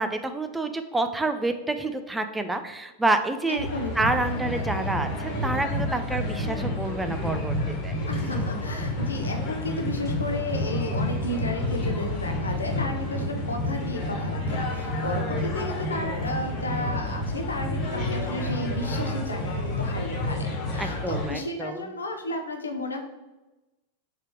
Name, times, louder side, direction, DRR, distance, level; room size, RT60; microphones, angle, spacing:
voice 1, 0.0-3.7 4.0-8.0 20.8-21.9, right 2 dB, 10° right, 8 dB, 0.4 m, -28 dB
voice 2, 3.5-3.9 8.1-23.0, left 2 dB, 90° left, 4 dB, 0.6 m, -33 dB
sound 1, 3.6-21.3, left 1 dB, 40° left, 1.4 m, -30 dB
sound 2, 7.8-19.5, left 1 dB, 25° left, 0.8 m, -38 dB
3.3 x 3.0 x 4.6 m, 1.1 s
hypercardioid pair, 100°, 0 cm